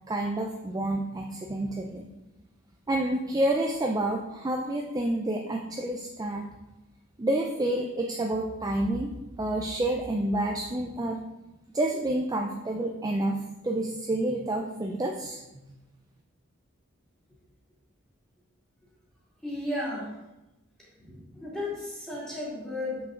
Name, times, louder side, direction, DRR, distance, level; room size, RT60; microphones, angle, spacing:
voice 1, 0.1-2.1 2.9-6.5 7.2-9.1 9.4-11.2 11.7-13.4 13.6-15.4, right 1 dB, 20° right, 1 dB, 0.4 m, -29 dB
voice 2, 19.4-20.1 21.0-23.0, left 1 dB, 5° left, -6 dB, 2.4 m, -34 dB
7.2 x 5.7 x 3.7 m, 1.0 s
head